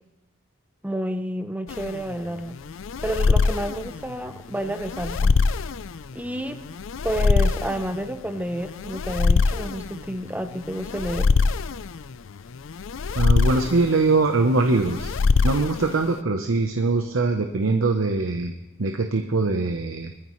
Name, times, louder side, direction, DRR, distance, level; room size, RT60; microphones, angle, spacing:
voice 1, 0.8-2.5 3.0-5.3 6.1-6.6 7.0-11.3, right 1 dB, 10° right, 9 dB, 0.8 m, -30 dB
sound 1, 1.7-16.2, left 4 dB, 75° left, 0.5 m, -24 dB
voice 2, 13.1-15.2 15.4-18.5 18.8-20.1, right 3 dB, 80° right, 5 dB, 0.8 m, -22 dB
21.0 x 14.5 x 3.2 m, 1.0 s
head